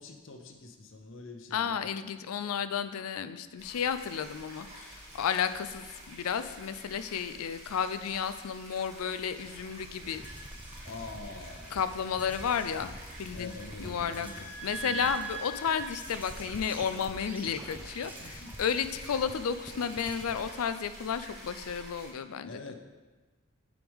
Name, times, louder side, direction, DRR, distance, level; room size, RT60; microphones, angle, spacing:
voice 1, 0.0-1.9 5.1-5.2 10.8-11.8 13.3-14.5 14.8-15.1 18.1-18.6 22.4-22.7, left 3 dB, 60° left, 5 dB, 0.7 m, -45 dB
voice 2, 1.5-10.2 11.7-12.9 13.2-13.5 13.8-14.3 14.6-22.6, left 7 dB, 85° left, 12 dB, 0.4 m, -32 dB
sound 1, 3.6-22.1, right 1 dB, 30° right, 2.5 m, -49 dB
sound 2, 9.5-20.5, right 3 dB, 10° right, 0.5 m, -43 dB
sound 3, 10.0-15.5, right 2 dB, 65° right, 1.0 m, -53 dB
9.2 x 5.0 x 3.5 m, 1.2 s
head